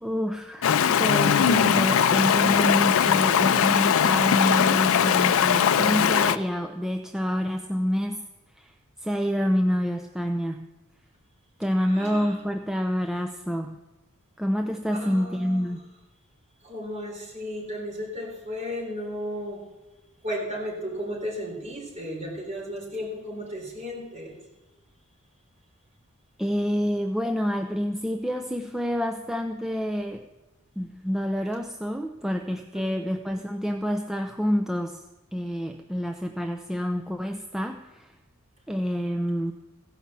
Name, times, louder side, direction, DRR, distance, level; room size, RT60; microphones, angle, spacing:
voice 1, 0.0-8.3 8.6-8.7 9.0-10.7 11.6-13.8 14.4-15.8 26.4-30.2 30.8-35.0 35.3-38.1 38.7-39.5, equal, ahead, 4 dB, 0.4 m, -27 dB
Stream, 0.6-6.4, left 8 dB, 65° left, 0.4 m, -20 dB
voice 2, 11.8-12.4 14.9-15.7 16.6-19.6 20.2-24.4 32.7-33.5, equal, 30° right, -3 dB, 3.9 m, -35 dB
15.5 x 5.6 x 7.4 m, 1.1 s
head